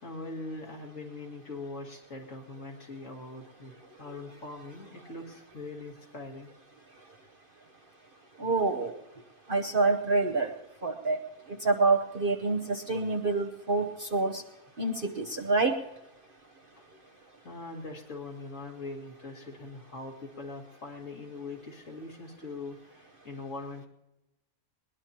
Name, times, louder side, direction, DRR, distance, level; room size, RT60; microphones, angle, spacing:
voice 1, 0.0-6.5 17.4-23.9, left 3 dB, 55° left, -1 dB, 2.5 m, -42 dB
voice 2, 8.4-8.9 9.5-10.5 10.8-11.2 11.6-14.4 14.8-15.7, right 3 dB, 45° right, 4 dB, 0.9 m, -27 dB
20.5 x 20.5 x 2.9 m, 0.98 s
omnidirectional pair, 1.6 m